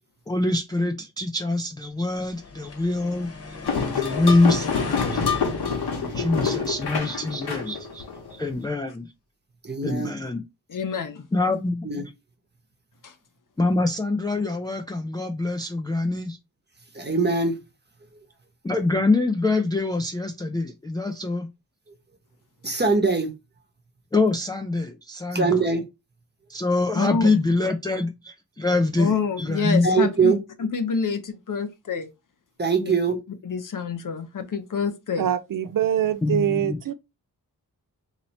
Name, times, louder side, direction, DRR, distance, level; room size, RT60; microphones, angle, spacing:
voice 1, 0.3-3.3 3.8-5.2 6.0-8.0 8.3-9.0 9.8-10.4 11.3-11.9 13.6-16.4 18.6-21.5 24.1-25.5 26.5-29.1 29.4-29.9 36.2-36.8, left 2 dB, 10° left, 0.4 m, -24 dB
sound 1, 2.2-8.3, left 2 dB, 40° left, 1.0 m, -37 dB
sound 2, 3.6-8.5, left 5 dB, 85° left, 1.1 m, -27 dB
voice 2, 9.6-10.1 11.8-12.0 16.9-17.6 22.6-23.3 25.3-25.8 29.8-30.4 32.6-33.2, right 4 dB, 25° right, 1.0 m, -22 dB
voice 3, 10.7-11.2 13.0-13.1 26.9-27.3 29.0-32.1 32.8-32.9 33.4-35.3, left 5 dB, 55° left, 0.7 m, -27 dB
voice 4, 35.2-36.9, right 10 dB, 60° right, 0.5 m, -24 dB
2.9 x 2.8 x 4.2 m
wide cardioid pair, 90°, 37 cm